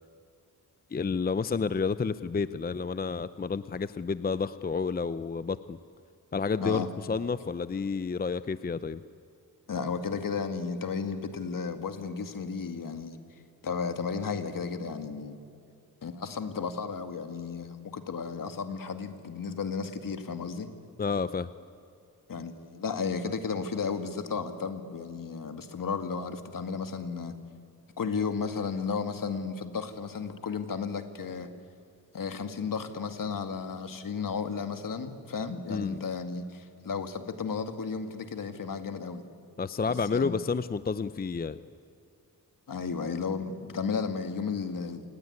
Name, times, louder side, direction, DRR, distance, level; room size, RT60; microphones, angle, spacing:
voice 1, 0.9-5.8 6.3-9.0 21.0-21.5 35.7-36.0 39.6-41.6, left 5 dB, 25° left, 14 dB, 0.6 m, -30 dB
voice 2, 9.7-13.2 13.6-15.4 16.0-20.7 22.3-27.4 28.0-31.5 32.1-39.2 40.1-40.4 42.7-45.1, left 5 dB, 60° left, 7 dB, 2.1 m, -33 dB
27.5 x 19.5 x 9.6 m, 2.4 s
cardioid pair, 70°, 37 cm